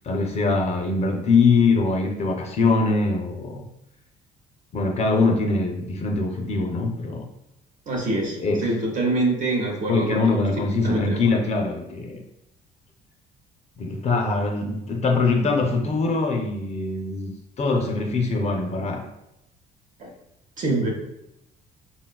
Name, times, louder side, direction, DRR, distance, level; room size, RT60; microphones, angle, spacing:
voice 1, 0.0-3.7 4.7-7.3 8.4-8.7 9.9-12.2 13.8-19.1, left 3 dB, 40° left, 2 dB, 0.4 m, -23 dB
voice 2, 7.9-8.4 8.6-10.4 10.8-11.2 20.0-20.1 20.6-20.9, right 2 dB, 50° right, 0 dB, 0.8 m, -25 dB
3.7 x 2.3 x 2.2 m, 0.85 s
cardioid pair, 110°, 17 cm